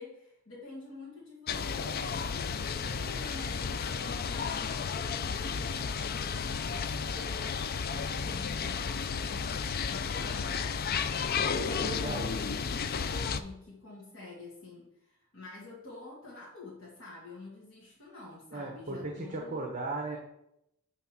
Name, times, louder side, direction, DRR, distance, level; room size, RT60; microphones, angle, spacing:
voice 1, 0.0-2.3 2.6-10.7 11.7-12.7 13.1-19.7, left 3 dB, 70° left, -6 dB, 2.0 m, -48 dB
sound 1, 1.5-13.4, left 6 dB, 45° left, 0.4 m, -33 dB
voice 2, 11.5-12.4 18.5-20.2, right 2 dB, 40° right, 1 dB, 1.2 m, -37 dB
9.3 x 3.6 x 6.0 m, 0.82 s
head